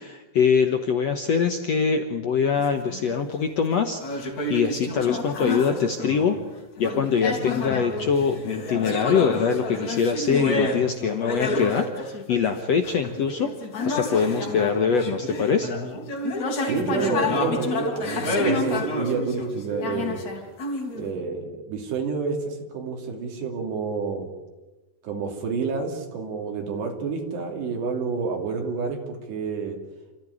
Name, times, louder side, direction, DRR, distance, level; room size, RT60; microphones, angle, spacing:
voice 1, 0.0-6.4 6.8-13.5 13.8-15.7, left 6 dB, 85° left, 6 dB, 1.4 m, -23 dB
sound 1, 2.6-3.5 4.0-6.5 6.8-21.1, left 2 dB, 45° left, 4.2 m, -29 dB
voice 2, 16.6-20.2 20.9-24.3 25.0-29.8, right 5 dB, 80° right, 2 dB, 5.1 m, -29 dB
28.5 x 15.0 x 10.0 m, 1.1 s
omnidirectional pair, 4.9 m